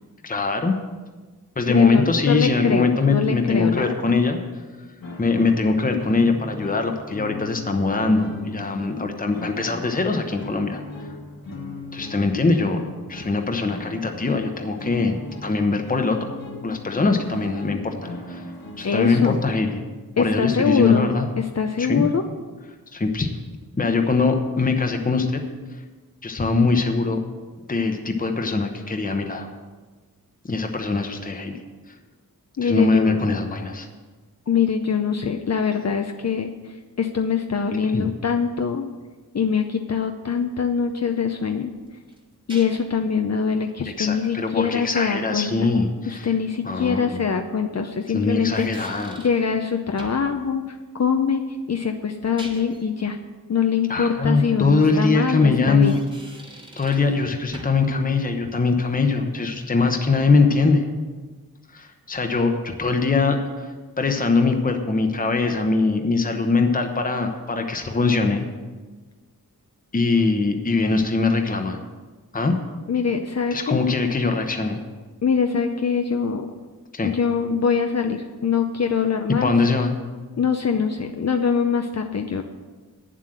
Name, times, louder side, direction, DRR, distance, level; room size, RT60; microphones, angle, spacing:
voice 1, 0.2-0.7 1.6-4.4 5.2-10.8 11.9-12.8 13.1-16.4 16.6-18.4 18.8-19.8 20.2-21.3 21.8-22.0 22.9-23.3 23.8-25.4 26.2-27.2 27.7-29.5 30.5-31.6 32.6-33.9 37.9-38.1 43.8-46.3 46.6-47.2 48.1-49.2 53.9-56.0 56.8-60.9 61.7-63.7 64.0-68.4 69.9-71.8 72.3-72.5 73.5-74.8 76.9-77.1 79.4-79.9, left 3 dB, 25° left, 4 dB, 0.9 m, -22 dB
voice 2, 1.7-4.0 18.8-19.4 20.2-21.1 21.4-22.2 32.6-33.2 34.5-36.5 37.0-38.8 39.3-41.7 42.5-45.7 46.1-51.4 51.7-53.2 53.5-56.0 72.9-73.8 75.2-76.5 77.0-79.5 80.4-82.4, left 6 dB, 45° left, 5 dB, 0.6 m, -23 dB
sound 1, 5.0-19.6, left 3 dB, 65° left, 1.9 m, -38 dB
sound 2, 41.9-43.0 46.2-46.3 48.3-49.5 50.0-50.3 52.1-52.9 55.7-57.2 57.5-57.9, right 1 dB, 15° right, 1.5 m, -43 dB
9.2 x 7.6 x 7.7 m, 1.3 s
wide cardioid pair, 130°, 36 cm